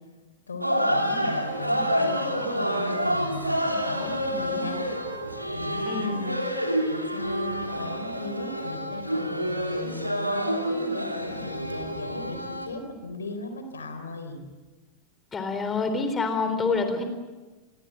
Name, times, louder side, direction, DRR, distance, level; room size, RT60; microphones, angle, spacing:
voice 1, 0.5-5.2 5.5-6.6 6.9-14.4 16.8-17.0, left 2 dB, 75° left, 8 dB, 4.0 m, -37 dB
sound 1, 0.6-12.7, equal, 90° right, 3.0 m, -28 dB
voice 2, 5.8-6.2 15.3-17.0, left 4 dB, 20° left, 8 dB, 4.0 m, -27 dB
29.0 x 23.5 x 7.7 m, 1.3 s
figure-of-eight pair, 90°, 0 cm